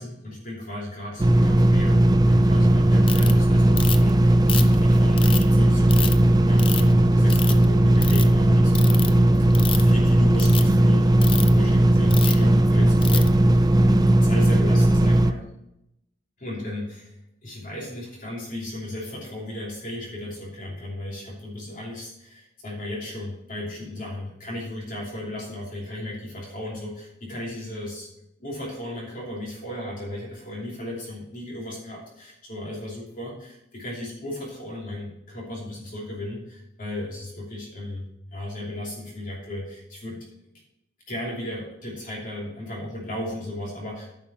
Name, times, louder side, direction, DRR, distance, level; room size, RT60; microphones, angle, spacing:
voice 1, 0.0-2.0 2.3-15.4 16.4-17.1 17.4-28.1 28.4-40.2 41.1-44.1, left 1 dB, 45° left, -4 dB, 2.9 m, -35 dB
sound 1, 1.2-15.3, right 1 dB, 20° right, 0.4 m, -17 dB
Ratchet pawl, 3.1-3.3 3.8-4.1 4.5-5.4 5.9-6.1 6.6-6.9 7.3-7.6 8.0-8.2 8.7-9.1 9.5-9.9 10.3-10.6 11.2-11.5 12.1-12.4 13.0-13.3, left 8 dB, 25° left, 0.5 m, -29 dB
10.0 x 5.7 x 5.5 m, 0.81 s
head